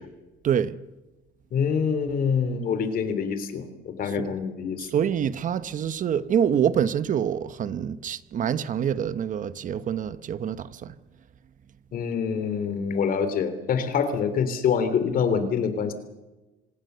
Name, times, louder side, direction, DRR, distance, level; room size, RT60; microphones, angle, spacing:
voice 1, 0.4-0.8 4.0-4.3 4.8-11.0, right 8 dB, 50° right, 1.0 m, -26 dB
voice 2, 1.5-3.7 4.0-4.9 11.9-15.9, left 6 dB, 55° left, 3.2 m, -25 dB
26.0 x 19.0 x 6.9 m
cardioid pair, 110°, 17 cm